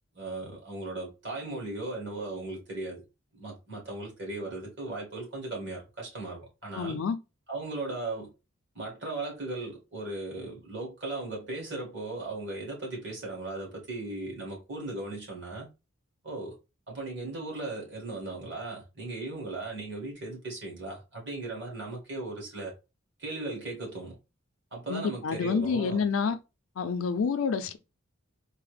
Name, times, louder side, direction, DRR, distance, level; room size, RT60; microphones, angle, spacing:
voice 1, 0.2-3.0 3.3-7.0 7.5-8.3 8.8-15.7 16.2-16.6 16.9-22.8 23.2-24.2 24.7-26.3, right 2 dB, 55° right, 1.8 m, -37 dB
voice 2, 6.8-7.2 24.9-26.4 26.8-27.8, left 5 dB, 75° left, 0.4 m, -28 dB
3.9 x 2.0 x 3.2 m
head